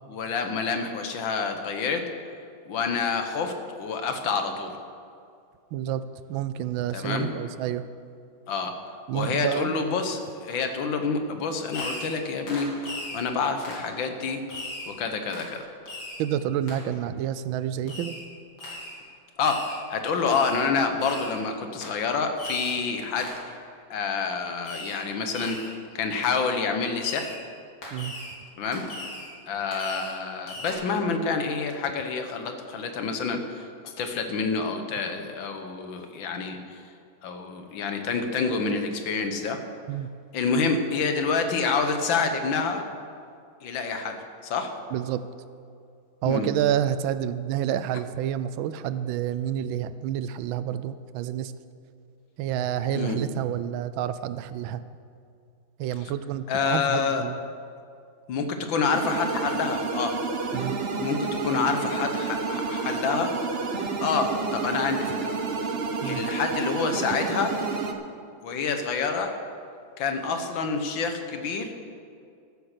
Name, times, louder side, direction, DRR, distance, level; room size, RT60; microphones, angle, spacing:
voice 1, 0.1-2.1 2.7-4.7 6.9-7.3 8.5-8.7 9.1-12.7 13.1-14.4 14.9-15.7 19.4-23.4 23.9-27.4 28.6-28.9 29.5-36.8 37.2-39.6 40.3-42.9 43.6-44.8 46.2-46.5 53.0-53.2 56.5-57.3 58.3-60.2 61.0-63.4 64.0-65.3 65.6-65.7 66.0-67.6 68.4-69.4 70.0-71.7, left 5 dB, 75° left, 6 dB, 1.8 m, -28 dB
voice 2, 5.7-7.8 9.1-9.7 16.2-18.2 27.9-28.1 39.9-40.1 44.9-45.2 46.2-51.5 52.4-54.8 55.8-57.4 60.5-60.8 66.0-66.2, right 10 dB, 80° right, 13 dB, 1.4 m, -29 dB
Fireworks, 11.7-12.2 12.5-13.2 13.6-13.9 14.5-14.9 15.3-15.5 15.9-16.2 16.7-16.8 17.9-18.2 18.6-19.0 19.4-19.8 20.3-20.6 21.0-21.4 21.8-22.0 22.4-22.8 23.2-23.5 24.6-25.0 25.3-25.7 26.2-26.3 27.0-27.4 27.8-28.3 28.7-29.3 29.7-30.2 30.5-30.7, left 1 dB, 55° left, 3.4 m, -38 dB
sound 1, 58.9-67.9, right 4 dB, 55° right, 0.6 m, -30 dB
13.5 x 8.3 x 6.7 m, 2.4 s
omnidirectional pair, 2.2 m